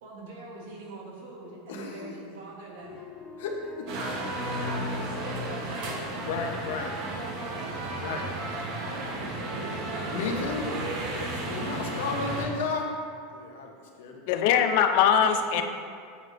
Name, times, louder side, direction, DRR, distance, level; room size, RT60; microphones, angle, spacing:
voice 1, 0.0-3.1 4.4-6.2 7.2-7.9 8.8-10.3 15.2-15.6, right 3 dB, 75° right, -1 dB, 1.2 m, -43 dB
voice 2, 1.7-2.2 3.4-3.9 6.3-6.9 8.0-8.3 10.1-10.7 11.5-12.9 13.3-14.4, left 4 dB, 80° left, 2 dB, 0.9 m, -33 dB
sound 1, 2.8-9.0, left 5 dB, 20° left, 0.6 m, -48 dB
sound 2, 3.9-12.5, right 1 dB, 50° right, 1.0 m, -33 dB
voice 3, 14.3-15.6, left 8 dB, 60° left, 7 dB, 0.4 m, -21 dB
8.2 x 4.9 x 2.6 m, 2.3 s
supercardioid pair, 150°, 0 cm